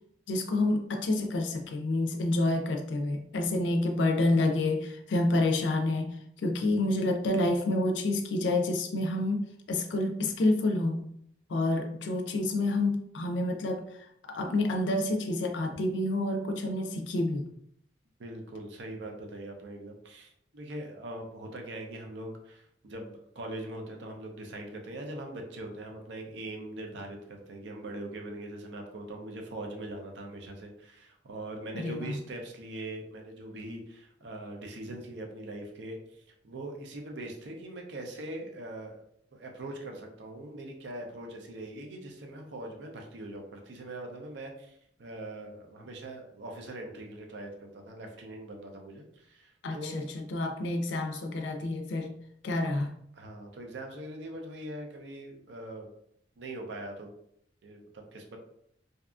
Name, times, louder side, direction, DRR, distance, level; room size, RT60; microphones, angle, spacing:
voice 1, 0.3-11.1 11.5-13.9 14.3-17.5 31.7-32.2 49.6-52.1 52.4-52.9, left 2 dB, 90° left, 5 dB, 0.4 m, -28 dB
voice 2, 18.2-39.0 39.3-50.1 53.1-55.9 56.4-57.1 57.6-58.4, right 1 dB, 85° right, 2 dB, 0.5 m, -42 dB
2.6 x 2.4 x 2.3 m, 0.71 s
head